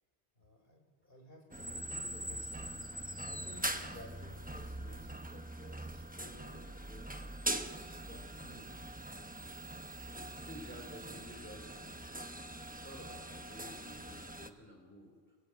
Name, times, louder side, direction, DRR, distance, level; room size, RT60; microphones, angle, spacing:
voice 1, 0.4-2.6 3.0-7.4 7.9-8.7 9.4-9.6, left 1 dB, 55° left, 3 dB, 4.5 m, -56 dB
sound 1, 1.5-14.5, right 1 dB, 10° right, 0.8 m, -42 dB
sound 2, 3.0-13.5, left 2 dB, 85° left, 5.4 m, -69 dB
voice 2, 10.3-12.1 12.7-15.4, equal, 10° left, 1 dB, 3.5 m, -52 dB
26.0 x 18.0 x 7.9 m, 1.5 s
omnidirectional pair, 1.1 m